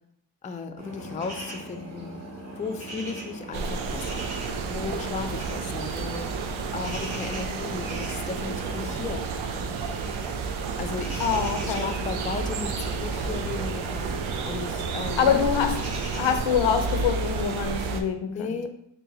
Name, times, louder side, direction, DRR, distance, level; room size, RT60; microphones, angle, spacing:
voice 1, 0.4-2.2 2.6-4.2 4.7-9.7 10.8-11.2 11.6-14.1 14.4-15.4 18.3-18.7, left 4 dB, 20° left, 6 dB, 0.3 m, -35 dB
sound 1, 0.8-17.8, right 1 dB, 35° right, 1.1 m, -41 dB
sound 2, 3.5-18.0, right 4 dB, 85° right, 0.6 m, -31 dB
voice 2, 11.2-11.9 15.2-15.8 16.1-18.5, left 7 dB, 70° left, 8 dB, 0.6 m, -25 dB
3.9 x 2.2 x 3.9 m, 0.72 s
cardioid pair, 55°, 47 cm